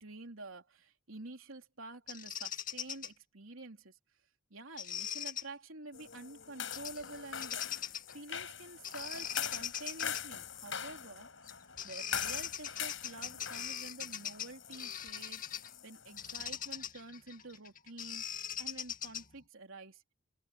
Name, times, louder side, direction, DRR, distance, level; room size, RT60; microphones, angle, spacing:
voice 1, 0.0-4.0 4.5-11.3 11.8-20.0, right 2 dB, 75° right, 3.3 m, -49 dB
Bird vocalization bird call bird song, 2.1-3.1 4.8-5.4 6.7-7.0 7.3-8.1 8.8-10.2 11.5-11.6 11.8-15.7 16.2-19.4, left 9 dB, 40° left, 2.3 m, -41 dB
sound 1, 5.9-16.4, left 8 dB, 65° left, 5.4 m, -43 dB
open air
head